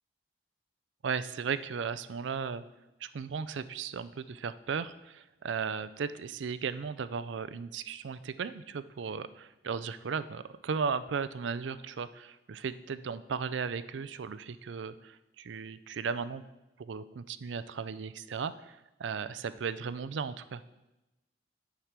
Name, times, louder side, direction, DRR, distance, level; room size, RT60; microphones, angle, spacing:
voice 1, 1.0-2.6 3.0-16.4 16.8-20.6, right 6 dB, 85° right, 14 dB, 0.4 m, -36 dB
10.0 x 4.7 x 5.9 m, 0.98 s
head